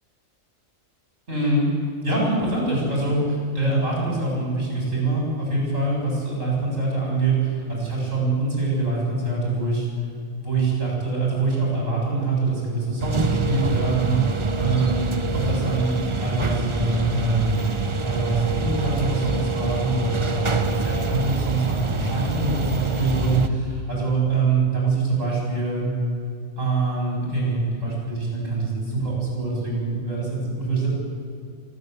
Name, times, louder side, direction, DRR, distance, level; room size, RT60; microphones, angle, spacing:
voice 1, 1.3-1.7 2.0-9.9 10.4-14.2 14.6-17.6 18.0-25.9 26.6-30.9, right 3 dB, 75° right, -3 dB, 8.1 m, -24 dB
sound 1, 13.0-23.5, right 3 dB, 25° right, 0.9 m, -26 dB
26.5 x 12.0 x 8.3 m, 2.5 s
omnidirectional pair, 1.3 m